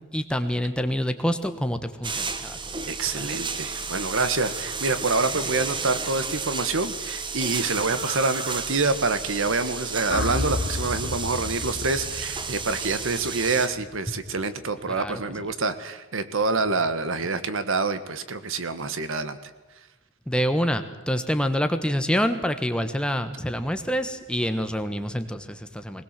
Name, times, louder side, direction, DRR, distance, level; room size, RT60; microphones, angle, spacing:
voice 1, 0.1-2.6 3.1-3.4 5.3-5.5 14.9-15.2 20.3-26.0, equal, 5° left, 8 dB, 1.3 m, -27 dB
sound 1, 2.0-13.7, right 4 dB, 25° right, 1.2 m, -32 dB
voice 2, 2.9-19.4, right 3 dB, 70° right, 12 dB, 1.4 m, -26 dB
sound 2, 10.1-14.3, left 2 dB, 55° left, 1.2 m, -32 dB
20.0 x 20.0 x 7.5 m, 1.1 s
head